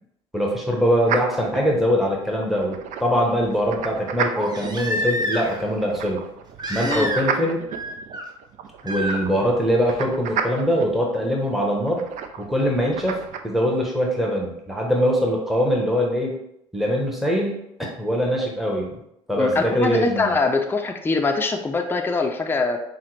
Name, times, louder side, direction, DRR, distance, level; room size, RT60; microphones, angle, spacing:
voice 1, 0.3-6.2 6.7-7.6 8.8-12.0 12.4-16.4 16.7-17.6 18.0-19.0 19.3-20.2, equal, ahead, -1 dB, 1.0 m, -22 dB
sound 1, 1.1-13.4, right 7 dB, 60° right, 0.4 m, -33 dB
Crying sobbing, 1.6-1.7 4.3-5.7 6.6-7.4 7.7-8.2 8.8-9.2 10.8-10.9, equal, 25° right, 0.9 m, -28 dB
voice 2, 19.4-22.8, left 3 dB, 15° left, 3 dB, 0.5 m, -23 dB
5.5 x 2.2 x 3.2 m, 0.80 s
hypercardioid pair, 65°, 15 cm